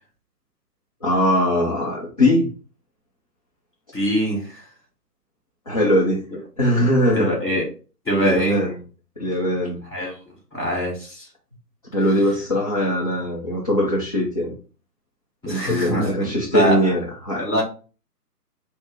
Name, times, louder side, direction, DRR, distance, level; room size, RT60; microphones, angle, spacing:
voice 1, 1.0-2.5 5.7-6.2 6.6-7.4 8.2-8.7 9.2-9.8 11.9-14.5 15.5-17.6, left 1 dB, 25° left, -5 dB, 0.6 m, -21 dB
voice 2, 3.9-4.6 7.1-7.6 8.0-8.6 9.9-10.2 10.5-11.3 15.4-16.8 17.4-17.6, equal, 5° left, -6 dB, 1.2 m, -23 dB
5.9 x 2.1 x 3.5 m, 0.36 s
figure-of-eight pair, 145°, 48 cm